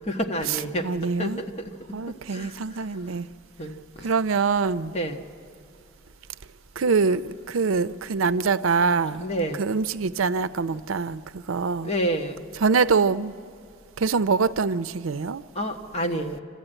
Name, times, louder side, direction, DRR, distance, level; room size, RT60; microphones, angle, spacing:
voice 1, 0.0-0.9 1.2-1.5 2.3-2.5 3.6-4.1 4.9-5.3 9.2-9.7 10.7-10.8 11.8-12.5 15.5-16.4, right 1 dB, 30° left, 3 dB, 1.3 m, -29 dB
voice 2, 0.8-1.4 1.9-3.3 4.0-4.9 6.8-9.3 9.6-11.9 12.6-13.3 14.0-15.4, right 5 dB, 80° right, 14 dB, 0.5 m, -24 dB
29.0 x 13.0 x 9.0 m, 2.5 s
head